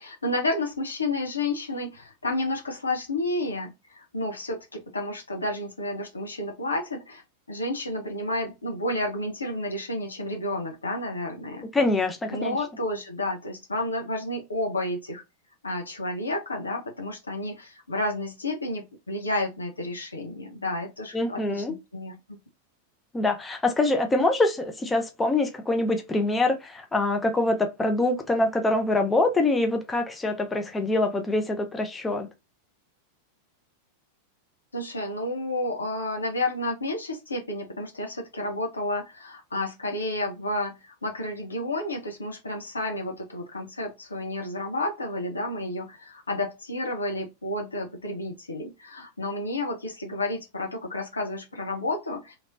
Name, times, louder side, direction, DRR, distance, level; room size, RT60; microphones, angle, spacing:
voice 1, 0.0-7.2 7.5-11.7 12.3-15.2 15.6-22.4 34.7-52.4, left 1 dB, 75° left, 0.9 m, -31 dB
voice 2, 11.7-12.6 21.1-21.7 23.1-32.3, left 2 dB, 10° left, 0.6 m, -24 dB
3.2 x 2.9 x 2.5 m
figure-of-eight pair, 90°, 0 cm